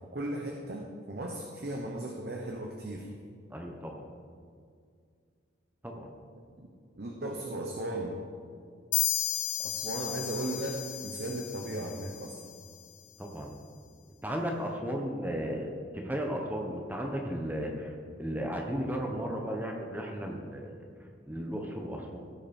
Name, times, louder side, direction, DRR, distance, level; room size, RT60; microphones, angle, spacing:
voice 1, 0.1-3.1 6.6-6.7 7.0-8.2 9.6-12.3, right 1 dB, 55° right, 1 dB, 1.0 m, -36 dB
voice 2, 3.5-4.1 5.8-6.1 13.2-13.5 14.2-17.9 18.2-20.8 21.3-22.2, equal, 10° right, 1 dB, 1.1 m, -35 dB
sound 1, 8.9-12.5, left 12 dB, 75° left, 1.0 m, -34 dB
15.5 x 6.0 x 4.4 m, 2.1 s
head